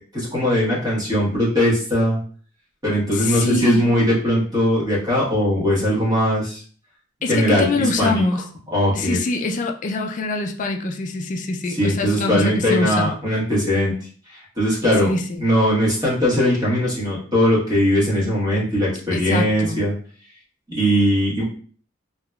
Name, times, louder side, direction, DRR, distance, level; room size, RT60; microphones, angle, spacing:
voice 1, 0.1-2.2 2.8-6.6 7.3-8.2 8.7-9.2 11.8-13.9 14.6-15.1 15.4-19.9 20.7-21.4, equal, 20° right, -5 dB, 1.2 m, -20 dB
voice 2, 3.1-3.8 7.2-8.5 8.9-13.1 15.0-15.4 19.1-19.9, left 2 dB, 40° left, 4 dB, 0.3 m, -24 dB
3.3 x 2.9 x 2.3 m, 0.43 s
head